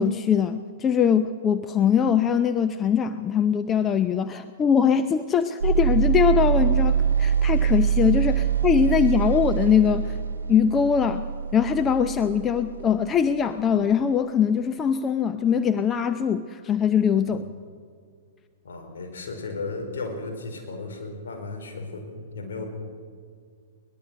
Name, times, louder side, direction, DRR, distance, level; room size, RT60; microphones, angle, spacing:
voice 1, 0.0-10.2 10.5-17.4, left 7 dB, 20° left, 9 dB, 0.7 m, -22 dB
sound 1, 5.6-13.7, right 8 dB, 70° right, 1.1 m, -24 dB
voice 2, 18.6-22.7, left 3 dB, 65° left, 3 dB, 4.5 m, -35 dB
22.0 x 19.5 x 6.3 m, 2.1 s
figure-of-eight pair, 105°, 0 cm